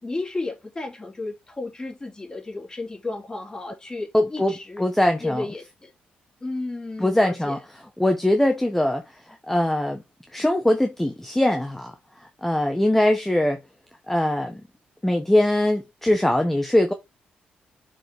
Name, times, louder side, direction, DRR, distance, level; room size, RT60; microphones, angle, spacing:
voice 1, 0.0-4.8 5.2-5.9 6.4-7.6, left 2 dB, 25° left, 3.8 m, -33 dB
voice 2, 4.1-5.4 7.0-7.6 8.0-9.0 9.5-10.0 10.3-11.9 12.4-13.6 14.1-14.6 15.0-16.9, left 1 dB, 10° left, 1.3 m, -21 dB
7.5 x 4.6 x 3.7 m
cardioid pair, 70°, 3 cm